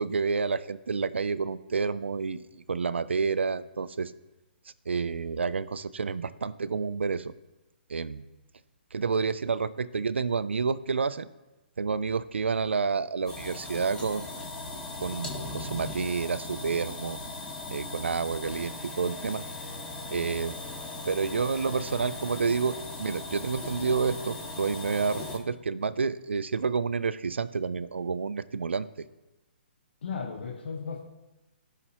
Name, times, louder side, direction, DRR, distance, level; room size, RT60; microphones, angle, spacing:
voice 1, 0.0-4.1 4.9-7.3 7.9-8.3 8.9-11.3 11.8-14.3 15.0-17.2 17.7-19.4 20.1-20.6 21.1-28.9, right 5 dB, 85° right, 14 dB, 0.4 m, -29 dB
sound 1, 13.3-25.4, left 2 dB, 10° left, 1.9 m, -38 dB
voice 2, 30.0-31.0, left 5 dB, 70° left, 2 dB, 1.2 m, -35 dB
15.5 x 5.8 x 3.0 m, 1.0 s
hypercardioid pair, 135°, 6 cm